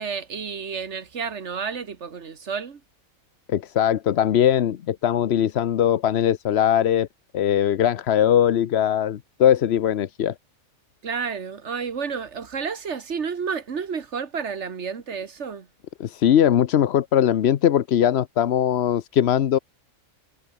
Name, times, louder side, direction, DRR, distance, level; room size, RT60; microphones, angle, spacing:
voice 1, 0.0-2.8 11.0-15.7, right 6 dB, 55° right, 1.8 m, -31 dB
voice 2, 3.5-7.1 7.3-10.3 16.0-19.6, left 10 dB, 55° left, 0.9 m, -20 dB
omnidirectional pair, 1.5 m